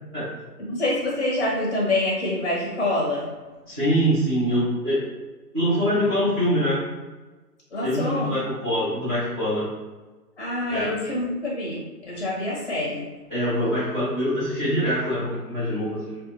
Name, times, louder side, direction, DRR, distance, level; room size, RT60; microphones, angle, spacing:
voice 1, 0.6-3.3 7.7-8.4 10.4-13.1, left 1 dB, 40° left, -5 dB, 0.6 m, -26 dB
voice 2, 3.7-5.0 5.5-6.8 7.8-9.7 10.7-10.9 13.3-16.2, equal, 20° right, -15 dB, 0.6 m, -24 dB
2.6 x 2.3 x 2.6 m, 1.2 s
hypercardioid pair, 160°, 49 cm